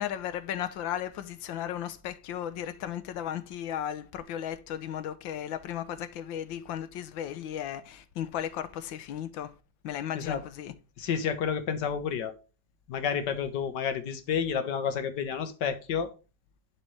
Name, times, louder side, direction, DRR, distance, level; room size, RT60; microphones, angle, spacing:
voice 1, 0.0-9.5 9.8-10.7, left 10 dB, 85° left, 1.6 m, -35 dB
voice 2, 11.0-12.3 12.9-16.1, left 7 dB, 70° left, 1.6 m, -30 dB
11.0 x 4.2 x 3.1 m
omnidirectional pair, 2.0 m